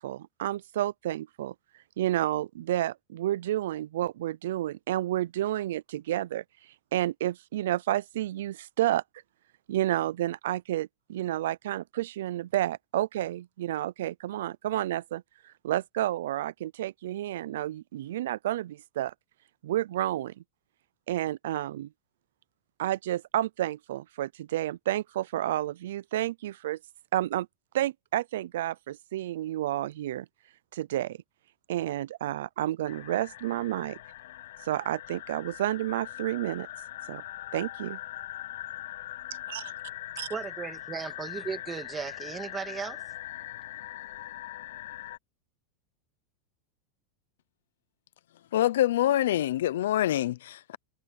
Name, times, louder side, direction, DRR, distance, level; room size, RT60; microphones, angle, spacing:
voice 1, 0.0-1.5 2.0-6.4 6.9-9.0 9.7-19.1 19.6-20.3 21.1-21.9 22.8-26.8 27.1-27.5 27.7-30.3 30.7-31.2 31.7-34.0 34.6-36.7 37.1-37.2 37.5-38.0 39.5-39.7 40.2-40.3, right 13 dB, 70° right, 0.4 m, -30 dB
sound 1, 32.9-45.2, left 14 dB, 70° left, 7.9 m, -41 dB
voice 2, 40.3-43.0, right 6 dB, 10° right, 2.4 m, -36 dB
voice 3, 48.5-50.8, left 13 dB, 90° left, 0.6 m, -25 dB
supercardioid pair, 180°, 0 cm